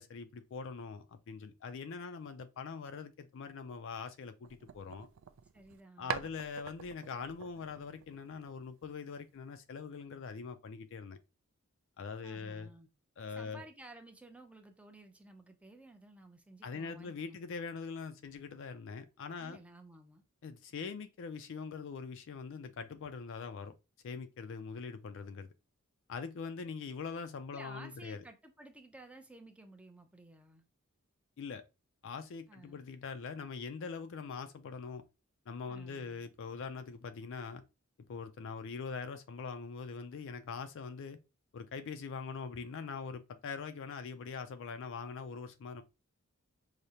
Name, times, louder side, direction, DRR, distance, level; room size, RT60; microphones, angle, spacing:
voice 1, 0.0-5.1 6.0-11.2 12.0-12.7 13.2-13.7 16.6-19.6 20.4-23.7 24.0-25.5 26.1-28.2 31.4-31.6 32.0-35.0 35.5-37.6 38.1-41.2 41.5-45.8, left 5 dB, 60° left, 0.4 m, -43 dB
sound 1, 4.4-5.8 6.1-8.7, right 8 dB, 65° right, 0.3 m, -44 dB
voice 2, 5.5-6.2 12.2-12.9 13.4-17.5 19.4-20.2 27.5-30.6 32.5-32.8 35.7-36.3, right 2 dB, 5° right, 0.5 m, -54 dB
4.8 x 2.1 x 2.7 m
head